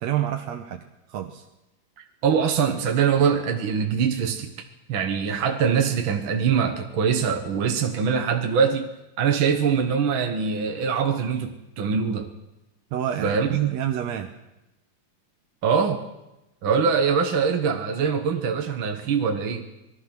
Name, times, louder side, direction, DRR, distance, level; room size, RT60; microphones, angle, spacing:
voice 1, 0.0-1.5 12.9-14.3, right 11 dB, 70° right, 4 dB, 2.2 m, -28 dB
voice 2, 2.2-4.5 4.9-8.9 9.2-12.3 13.2-13.6 15.6-16.0 16.6-19.6, right 6 dB, 50° right, 4 dB, 1.8 m, -23 dB
25.5 x 20.5 x 6.0 m, 0.95 s
omnidirectional pair, 3.3 m